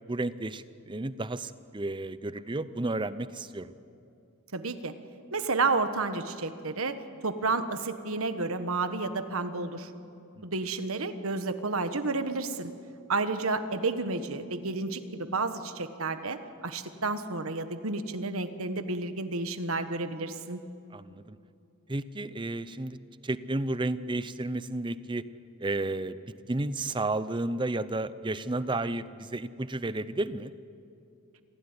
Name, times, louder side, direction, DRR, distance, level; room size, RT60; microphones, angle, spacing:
voice 1, 0.1-3.7 10.4-10.5 20.9-21.4 21.9-23.0 23.2-25.2 25.6-26.2 26.5-30.5, right 2 dB, 20° right, 14 dB, 0.6 m, -32 dB
voice 2, 4.5-4.9 5.3-7.0 7.2-9.9 10.4-12.7 13.1-20.6, right 3 dB, 70° right, 9 dB, 1.4 m, -31 dB
26.5 x 16.0 x 9.8 m, 2.6 s
head